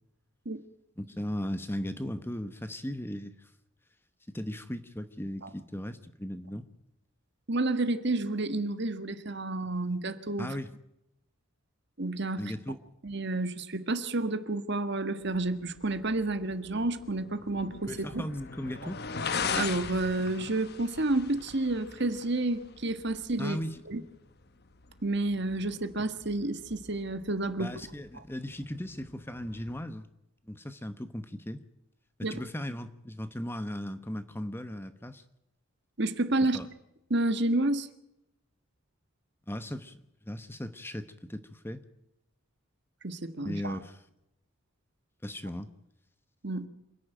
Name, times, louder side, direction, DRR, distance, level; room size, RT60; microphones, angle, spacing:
voice 1, 1.0-3.5 4.3-6.7 10.4-10.7 12.4-12.8 17.9-19.0 23.4-23.8 27.6-30.1 30.5-31.6 32.3-35.2 36.5-36.7 39.5-41.8 43.4-44.0 45.2-45.7, left 1 dB, 10° left, 11 dB, 1.0 m, -37 dB
voice 2, 7.5-10.6 12.0-12.5 13.0-18.2 19.6-23.6 23.9-24.0 25.0-27.7 28.2-28.3 32.2-32.4 36.0-36.6 37.1-37.9 43.0-43.8 46.4-46.7, right 2 dB, 55° right, 10 dB, 1.6 m, -30 dB
sound 1, 15.2-29.8, left 5 dB, 50° left, 1.1 m, -41 dB
27.0 x 10.5 x 9.1 m, 0.84 s
head